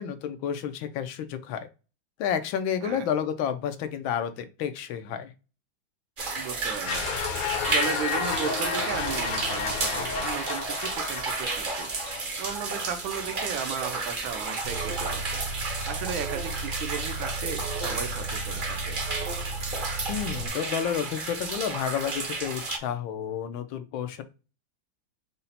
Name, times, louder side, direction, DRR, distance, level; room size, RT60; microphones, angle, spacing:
voice 1, 0.0-1.7 2.2-5.3 20.1-24.2, left 8 dB, 90° left, 9 dB, 1.5 m, -30 dB
sound 1, 6.2-22.8, right 3 dB, 50° right, 0.6 m, -32 dB
voice 2, 6.3-7.1 7.4-11.9 12.4-15.2 15.6-19.0, right 7 dB, 85° right, 8 dB, 1.5 m, -35 dB
sound 2, 6.9-12.2, left 6 dB, 65° left, 1.1 m, -31 dB
Alarm, 14.6-20.5, right 2 dB, 65° right, 1.4 m, -35 dB
5.5 x 2.1 x 4.0 m, 0.32 s
omnidirectional pair, 2.1 m